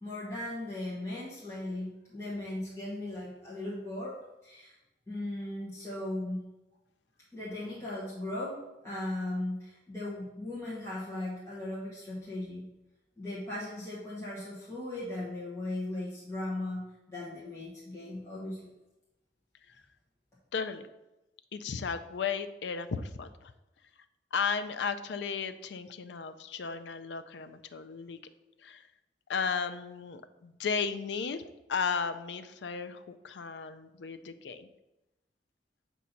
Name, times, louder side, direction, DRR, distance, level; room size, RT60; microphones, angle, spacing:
voice 1, 0.0-4.2 4.4-4.7 5.1-6.4 7.3-8.6 8.8-12.6 13.2-16.8 17.1-18.7, left 1 dB, 15° left, -8 dB, 1.2 m, -37 dB
voice 2, 20.5-20.9 21.5-23.5 24.3-28.2 28.6-28.9 29.3-34.7, left 5 dB, 80° left, 10 dB, 0.4 m, -35 dB
7.3 x 2.7 x 5.7 m, 0.99 s
head